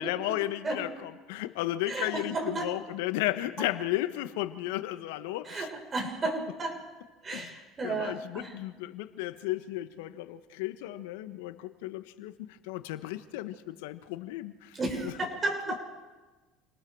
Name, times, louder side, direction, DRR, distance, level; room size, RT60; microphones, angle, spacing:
voice 1, 0.0-5.7 7.3-7.5 7.8-15.1, left 15 dB, 75° left, 11 dB, 1.2 m, -34 dB
voice 2, 1.9-2.7 5.4-6.8 7.2-8.6 14.7-15.8, right 2 dB, 30° right, 2 dB, 6.4 m, -33 dB
28.5 x 19.5 x 4.8 m, 1.2 s
hypercardioid pair, 80°, 0 cm